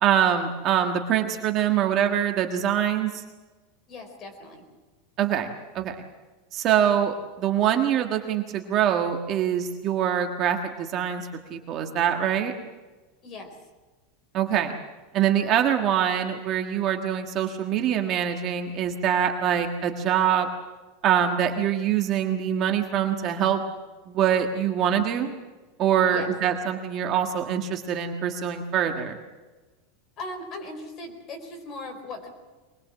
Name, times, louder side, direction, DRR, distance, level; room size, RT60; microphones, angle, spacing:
voice 1, 0.0-3.2 5.2-5.5 5.7-5.9 6.5-12.5 14.3-14.7 15.1-20.5 21.0-23.6 24.1-25.3 25.8-29.2, right 9 dB, 30° right, 4 dB, 1.4 m, -24 dB
voice 2, 3.9-4.6 13.2-13.6 26.1-26.3 30.2-32.3, left 2 dB, 25° left, 4 dB, 4.5 m, -38 dB
24.0 x 20.5 x 7.5 m, 1.2 s
supercardioid pair, 180°, 0 cm